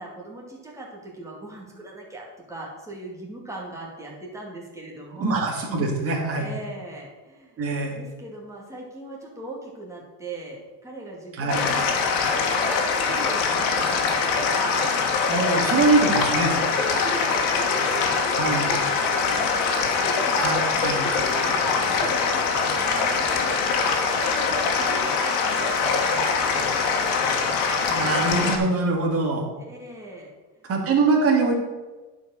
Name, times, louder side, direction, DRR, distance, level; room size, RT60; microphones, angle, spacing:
voice 1, 0.0-5.5 6.4-12.8 13.1-14.9 16.5-24.0 24.2-26.9 29.6-30.3, right 2 dB, 5° right, -3 dB, 2.4 m, -39 dB
voice 2, 5.2-6.5 7.6-8.0 11.4-11.6 15.3-16.5 18.4-18.7 20.3-21.0 24.2-24.3 27.9-29.5 30.7-31.5, right 3 dB, 30° right, 0 dB, 2.3 m, -23 dB
sound 1, 11.5-28.6, left 5 dB, 85° left, 1.9 m, -23 dB
10.5 x 5.2 x 6.4 m, 1.2 s
cardioid pair, 145°, 44 cm